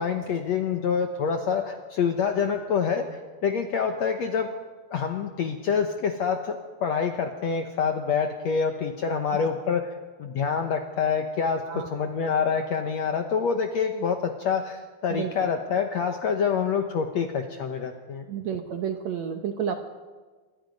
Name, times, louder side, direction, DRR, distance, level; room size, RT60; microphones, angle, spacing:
voice 1, 0.0-3.0 3.4-4.5 4.9-9.9 10.2-18.2, left 6 dB, 70° left, 5 dB, 1.7 m, -26 dB
voice 2, 18.3-19.8, right 8 dB, 65° right, 5 dB, 1.8 m, -30 dB
26.0 x 20.5 x 5.3 m, 1.4 s
omnidirectional pair, 4.4 m